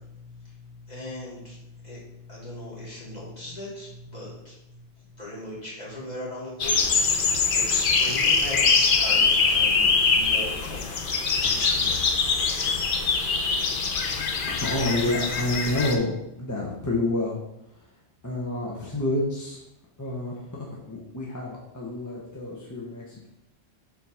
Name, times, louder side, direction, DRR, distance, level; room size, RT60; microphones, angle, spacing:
voice 1, 0.0-4.8 5.2-10.9 11.4-12.1, left 1 dB, 40° left, -7 dB, 2.3 m, -38 dB
sound 1, 6.6-15.9, left 4 dB, 55° left, 0.8 m, -23 dB
voice 2, 14.5-17.4 17.7-17.9 18.2-19.6 20.0-23.3, left 1 dB, 20° left, -4 dB, 0.8 m, -29 dB
4.6 x 3.9 x 5.6 m, 0.87 s
omnidirectional pair, 1.1 m